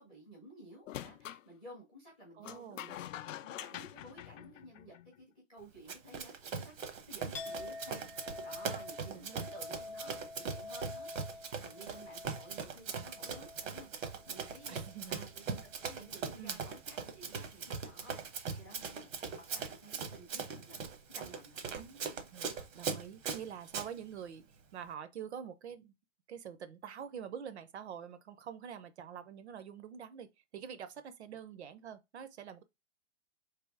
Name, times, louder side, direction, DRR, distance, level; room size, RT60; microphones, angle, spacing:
voice 1, 0.0-20.8 21.1-21.8, right 1 dB, 5° left, 0.5 m, -54 dB
sound 1, 0.9-1.4 2.4-5.1, left 12 dB, 80° left, 0.5 m, -45 dB
voice 2, 2.4-2.9 9.1-9.5 14.7-15.2 16.4-16.6 21.8-22.0 22.3-24.4 24.7-25.9 26.3-32.6, right 8 dB, 60° right, 0.6 m, -46 dB
Run, 5.9-23.9, right 5 dB, 85° right, 1.1 m, -41 dB
Chink clink, 7.3-15.0 15.4-16.0, left 3 dB, 45° left, 0.8 m, -48 dB
3.4 x 3.0 x 4.6 m
hypercardioid pair, 180°, 38 cm